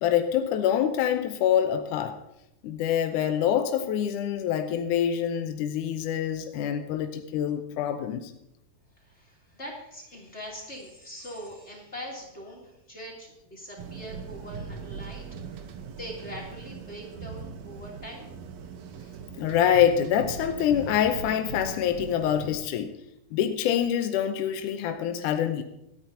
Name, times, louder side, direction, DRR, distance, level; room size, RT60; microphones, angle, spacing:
voice 1, 0.0-2.2 2.6-8.3 19.4-23.0 23.3-25.6, left 9 dB, 75° left, 6 dB, 2.0 m, -25 dB
voice 2, 9.0-18.3, equal, 20° left, -2 dB, 2.8 m, -42 dB
sound 1, 13.8-22.6, right 6 dB, 70° right, 1.9 m, -40 dB
26.5 x 9.4 x 2.8 m, 0.82 s
omnidirectional pair, 4.2 m